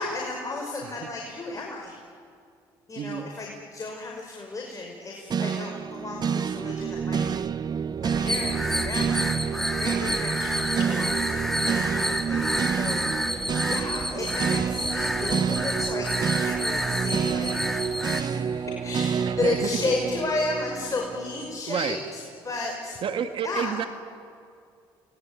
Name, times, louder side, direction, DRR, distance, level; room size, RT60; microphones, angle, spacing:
voice 1, 0.0-2.0 2.9-7.6 8.0-23.0 23.4-23.8, left 3 dB, 35° left, 0 dB, 5.5 m, -33 dB
voice 2, 3.0-3.3 12.3-12.6 19.2-19.8 21.7-22.0 23.0-23.9, right 8 dB, 60° right, 8 dB, 1.9 m, -30 dB
sound 1, 5.3-21.6, right 7 dB, 45° right, 0.7 m, -29 dB
sound 2, 8.1-18.2, equal, 5° left, 2.1 m, -29 dB
sound 3, 10.2-10.9 12.8-13.0, left 7 dB, 80° left, 5.2 m, -46 dB
29.5 x 21.0 x 9.6 m, 2.4 s
supercardioid pair, 65°, 10 cm